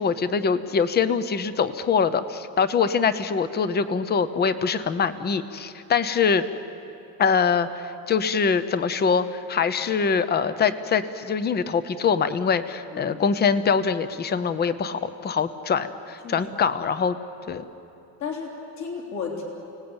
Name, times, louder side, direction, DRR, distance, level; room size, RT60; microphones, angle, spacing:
voice 1, 0.0-6.4 7.2-17.2 17.5-17.6, left 6 dB, 25° left, 13 dB, 0.8 m, -23 dB
voice 2, 12.9-13.3 16.2-16.5 18.2-19.4, left 5 dB, 50° left, -1 dB, 3.5 m, -33 dB
29.5 x 18.5 x 8.9 m, 2.9 s
cardioid pair, 170°, 37 cm